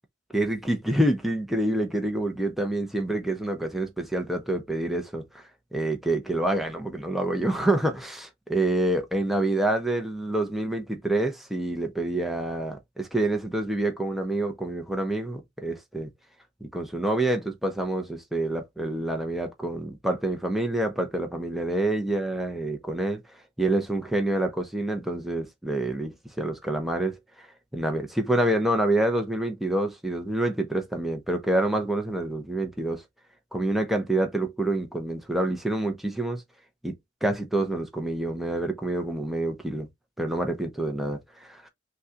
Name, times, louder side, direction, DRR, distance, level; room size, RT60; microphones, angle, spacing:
voice 1, 0.3-5.4 5.7-16.1 16.6-23.2 23.6-27.5 27.7-33.0 33.5-36.4 36.8-36.9 37.2-39.9 40.2-41.7, right 1 dB, ahead, 0.8 m, -27 dB
6.1 x 2.4 x 2.8 m
head